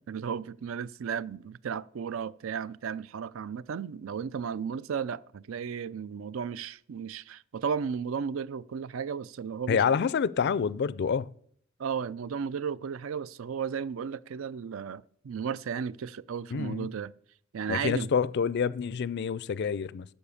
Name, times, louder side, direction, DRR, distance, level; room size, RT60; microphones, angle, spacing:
voice 1, 0.0-9.8 11.8-17.1 17.5-18.1, right 6 dB, 70° right, 0.4 m, -34 dB
voice 2, 9.7-11.3 16.5-16.9 17.7-20.1, left 6 dB, 55° left, 0.4 m, -27 dB
11.5 x 6.9 x 7.1 m
head